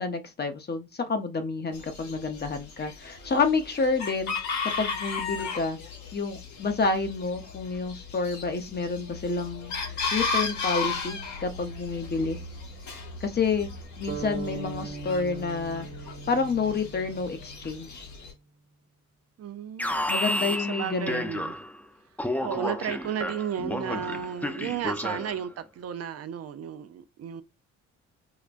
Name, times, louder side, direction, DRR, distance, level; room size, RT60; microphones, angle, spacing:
voice 1, 0.0-4.3 4.8-5.8 6.1-12.4 13.2-13.7 14.0-15.9 16.3-18.1 20.1-21.3, left 4 dB, 35° left, 0.8 m, -29 dB
Chicken rooster, 1.7-18.3, left 4 dB, 70° left, 1.3 m, -35 dB
sound 1, 14.1-18.0, right 5 dB, 40° right, 1.2 m, -40 dB
voice 2, 19.4-21.5 22.4-27.4, right 9 dB, 55° right, 0.5 m, -34 dB
Alarm, 19.8-21.8 22.2-25.4, left 1 dB, 5° left, 0.5 m, -31 dB
4.8 x 2.1 x 2.5 m
cardioid pair, 90°, 30 cm